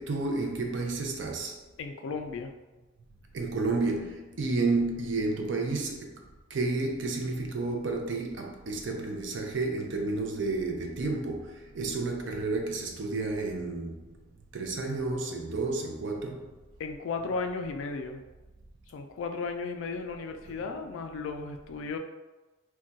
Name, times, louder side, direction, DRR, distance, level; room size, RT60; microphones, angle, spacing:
voice 1, 0.0-1.5 3.3-6.2 6.5-14.2 14.5-16.5 21.4-21.5, right 3 dB, 65° right, 2 dB, 0.4 m, -31 dB
voice 2, 1.8-2.5 16.8-18.2 18.9-22.0, left 4 dB, 75° left, 6 dB, 0.3 m, -35 dB
2.3 x 2.2 x 3.9 m, 1.1 s
head